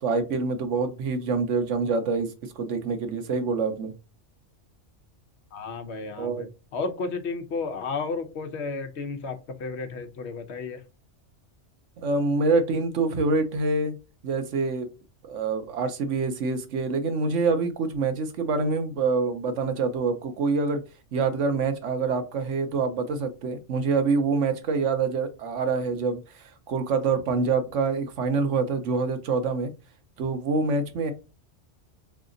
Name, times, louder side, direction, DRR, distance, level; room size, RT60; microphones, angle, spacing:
voice 1, 0.0-3.9 6.2-6.5 12.0-13.9 14.2-14.9 15.2-20.8 21.1-26.2 26.7-29.7 30.2-31.1, right 4 dB, 85° right, 1.2 m, -26 dB
voice 2, 5.5-6.5 6.7-10.8, left 4 dB, 70° left, 1.0 m, -32 dB
3.8 x 3.3 x 3.8 m
omnidirectional pair, 1.2 m